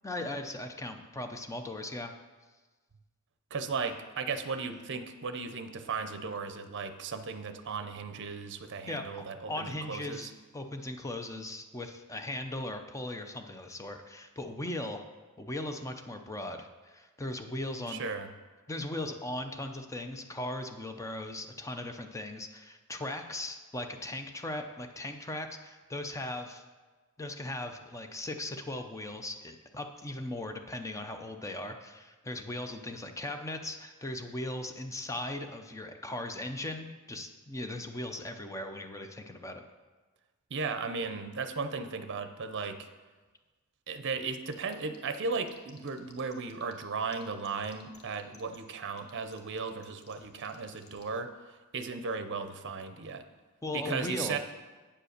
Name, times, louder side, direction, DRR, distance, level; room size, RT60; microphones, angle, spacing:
voice 1, 0.0-2.1 8.9-9.0 9.5-15.0 15.4-18.0 18.7-26.6 27.2-39.6 53.6-54.4, left 1 dB, 15° left, 6 dB, 0.5 m, -38 dB
voice 2, 3.5-10.3 17.9-18.3 40.5-42.9 43.9-51.3 51.7-53.2 53.7-54.4, right 4 dB, 55° right, 9 dB, 0.6 m, -36 dB
sound 1, 44.3-46.8 47.1-51.0, left 5 dB, 50° left, 1.1 m, -56 dB
8.7 x 5.1 x 6.5 m, 1.3 s
head